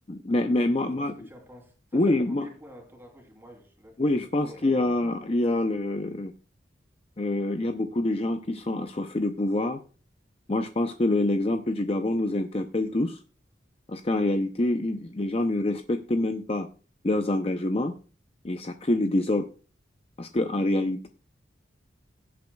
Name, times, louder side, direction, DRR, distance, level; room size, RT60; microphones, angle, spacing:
voice 1, 0.1-1.1 1.9-2.5 4.0-6.3 7.2-9.8 10.5-13.2 13.9-16.7 17.0-17.9 18.4-19.5 20.2-21.1, left 1 dB, 30° left, 7 dB, 0.6 m, -26 dB
voice 2, 1.0-4.0 4.4-5.0, equal, 10° right, 1 dB, 3.1 m, -49 dB
16.5 x 8.4 x 2.3 m, 0.36 s
head